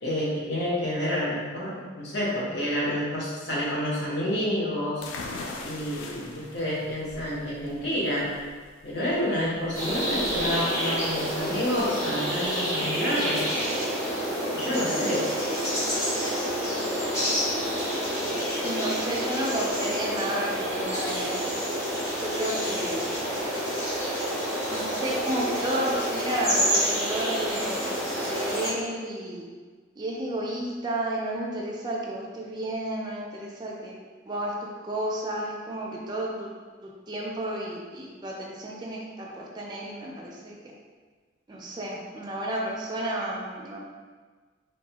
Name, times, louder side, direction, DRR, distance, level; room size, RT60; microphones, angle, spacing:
voice 1, 0.0-5.0 5.3-8.3 8.8-13.5 14.5-15.4, equal, 60° left, -6 dB, 0.8 m, -29 dB
sound 1, 5.0-12.5, left 3 dB, 75° left, 0.3 m, -42 dB
sound 2, 9.7-28.7, equal, 15° left, 0.6 m, -28 dB
voice 2, 18.6-21.5 22.1-23.1 24.7-28.0 28.3-29.4 30.0-33.9 34.3-36.5 36.8-40.6 41.5-43.8, right 1 dB, 20° right, -3 dB, 0.3 m, -32 dB
3.0 x 2.1 x 2.8 m, 1.5 s
head